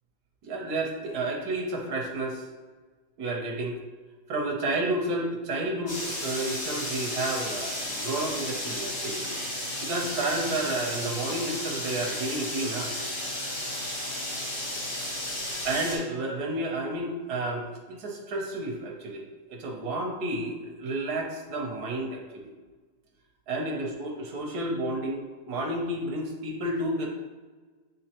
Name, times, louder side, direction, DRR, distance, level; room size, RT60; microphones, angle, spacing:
voice 1, 0.4-2.5 3.2-3.8 4.3-9.3 9.8-12.9 15.6-19.2 19.5-22.5 23.5-27.1, right 2 dB, 60° right, 0 dB, 1.2 m, -31 dB
sound 1, 5.9-16.0, left 1 dB, 80° left, 2.8 m, -33 dB
9.1 x 3.7 x 2.9 m, 1.3 s
omnidirectional pair, 2.3 m